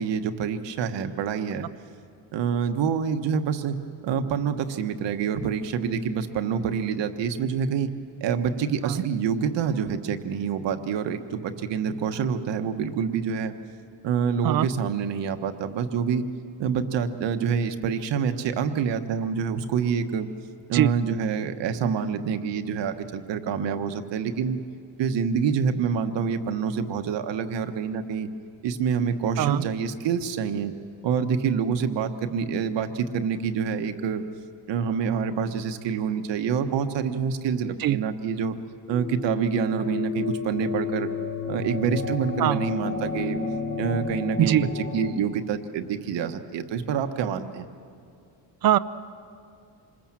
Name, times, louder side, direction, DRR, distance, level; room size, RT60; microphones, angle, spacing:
voice 1, 0.0-1.7 2.3-3.8 4.0-7.9 8.2-13.5 14.0-16.3 16.6-20.3 20.7-24.6 25.0-28.3 28.6-30.7 31.0-34.2 34.7-38.5 38.9-41.1 41.5-43.4 43.8-47.7, right 7 dB, 70° right, 8 dB, 1.3 m, -27 dB
sound 1, 38.8-45.1, left 5 dB, 30° left, 1.0 m, -31 dB
voice 2, 44.4-44.7 48.6-48.8, right 12 dB, 50° right, 16 dB, 0.6 m, -21 dB
26.5 x 21.0 x 7.5 m, 2.4 s
cardioid pair, 170°, 45 cm